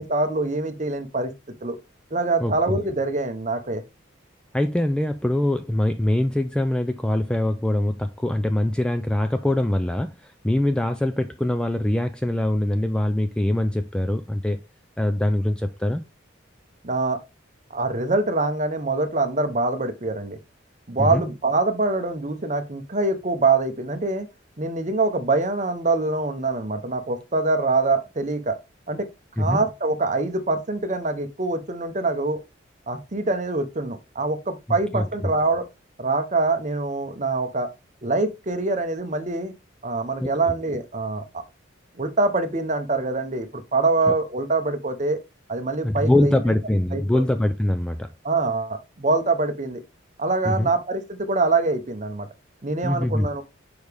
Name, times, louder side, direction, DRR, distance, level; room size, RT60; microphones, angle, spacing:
voice 1, 0.0-1.3 1.6-1.8 2.1-3.8 16.8-17.2 17.7-20.4 20.9-24.3 24.6-28.6 28.9-29.1 29.4-32.4 32.9-35.7 36.0-37.7 38.0-39.5 39.8-41.4 42.0-45.2 45.5-46.4 46.9-47.2 48.2-49.8 50.2-52.3 52.6-53.4, right 3 dB, 35° right, 0.8 m, -24 dB
voice 2, 4.5-14.6 15.0-16.0 21.0-21.2 29.4-29.6 34.9-35.0 40.2-40.3 44.1-44.2 45.8-48.1 50.4-50.7 52.8-53.3, left 1 dB, 5° left, 0.3 m, -23 dB
6.4 x 4.8 x 3.4 m
head